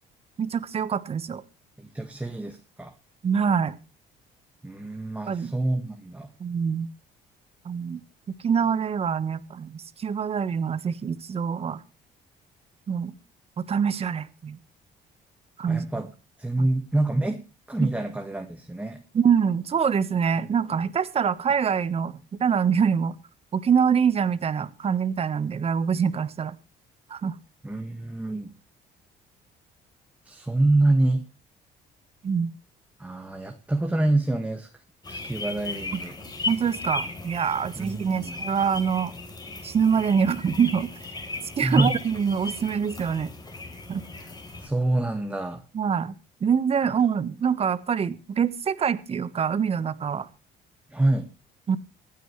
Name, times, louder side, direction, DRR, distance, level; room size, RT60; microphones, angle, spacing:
voice 1, 0.4-1.4 3.2-3.8 5.3-5.5 6.4-6.9 7.6-8.0 8.4-11.8 12.9-13.1 13.6-14.6 15.6-15.9 16.6-16.7 17.8-17.9 19.1-23.2 23.5-26.6 27.1-27.3 32.2-32.5 36.5-39.1 39.6-40.9 41.6-43.3 43.9-44.0 45.7-50.3 51.7-51.8, right 7 dB, 35° right, 14 dB, 1.3 m, -25 dB
voice 2, 1.8-2.9 4.6-6.3 15.7-16.1 16.4-17.4 17.7-19.0 27.6-28.5 30.3-31.2 33.0-34.7 35.1-36.1 37.8-38.3 41.6-41.9 44.6-45.6 50.9-51.3, right 2 dB, 10° right, 4 dB, 1.7 m, -26 dB
sound 1, 35.0-44.7, left 3 dB, 25° left, 3.9 m, -36 dB
25.5 x 9.3 x 3.2 m, 0.30 s
cardioid pair, 110°, 17 cm